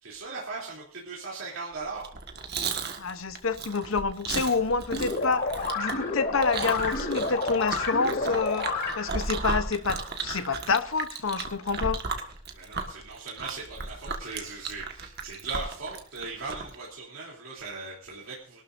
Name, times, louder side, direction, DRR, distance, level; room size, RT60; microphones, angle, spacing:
voice 1, 0.0-2.1 12.5-18.6, right 3 dB, 90° right, 3.1 m, -38 dB
Chewing mastication, 1.9-16.8, right 4 dB, 55° right, 1.6 m, -35 dB
voice 2, 3.0-5.5 5.7-8.7 8.9-12.0, left 4 dB, 85° left, 0.9 m, -28 dB
sound 1, 4.9-9.3, left 3 dB, 55° left, 3.4 m, -30 dB
22.5 x 12.5 x 2.6 m
head